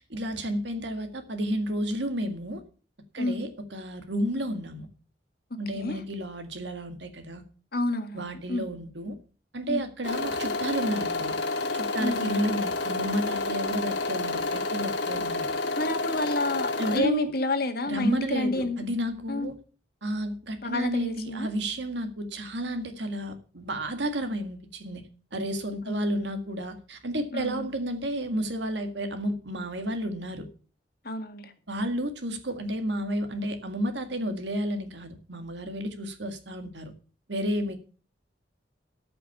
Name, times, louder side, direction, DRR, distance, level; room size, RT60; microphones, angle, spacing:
voice 1, 0.1-2.6 3.1-4.9 5.6-7.4 8.1-9.2 9.5-11.4 11.7-15.5 16.8-17.3 17.9-19.5 20.0-25.0 25.3-30.5 31.7-36.9 37.3-37.8, equal, 70° right, 7 dB, 1.9 m, -31 dB
voice 2, 5.5-6.0 7.7-8.7 9.7-9.8 12.0-12.3 15.8-18.8 19.3-19.5 20.6-21.5 25.9-26.2 27.3-27.7 31.0-31.5, left 2 dB, 60° left, 7 dB, 1.9 m, -30 dB
sound 1, 10.0-17.0, left 3 dB, 80° left, 1.9 m, -29 dB
13.0 x 6.0 x 7.2 m, 0.38 s
head